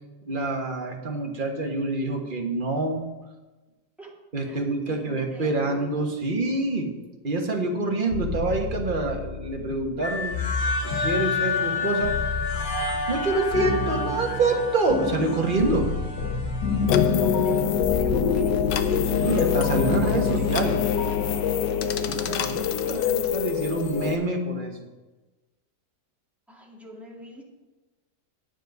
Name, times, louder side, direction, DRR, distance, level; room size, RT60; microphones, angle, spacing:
voice 1, 0.2-3.0 4.3-6.9 7.2-10.4 10.8-12.1 13.1-15.9 18.8-20.8 22.0-24.8, right 2 dB, 30° right, 1 dB, 1.4 m, -26 dB
voice 2, 4.4-6.0 17.0-19.5 19.9-21.2 22.8-23.1 26.5-27.4, equal, ahead, -3 dB, 2.0 m, -43 dB
sound 1, 8.1-21.4, left 4 dB, 70° left, 1.5 m, -30 dB
sound 2, 10.0-17.1, left 3 dB, 35° left, 1.0 m, -30 dB
sound 3, 16.9-24.2, left 8 dB, 90° left, 1.4 m, -24 dB
10.5 x 7.3 x 5.4 m, 1.2 s
omnidirectional pair, 1.9 m